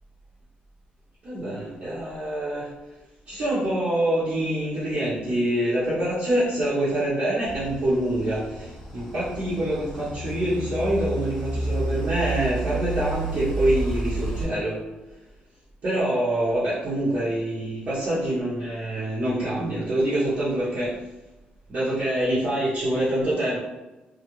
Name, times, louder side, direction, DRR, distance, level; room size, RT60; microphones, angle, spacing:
voice 1, 1.2-2.7 3.3-14.8 15.8-21.0 21.7-23.6, right 1 dB, 50° right, -11 dB, 0.8 m, -25 dB
sound 1, 7.4-14.4, right 2 dB, 10° left, 0.7 m, -31 dB
2.4 x 2.1 x 3.0 m, 1.1 s
cardioid pair, 135°, 3 cm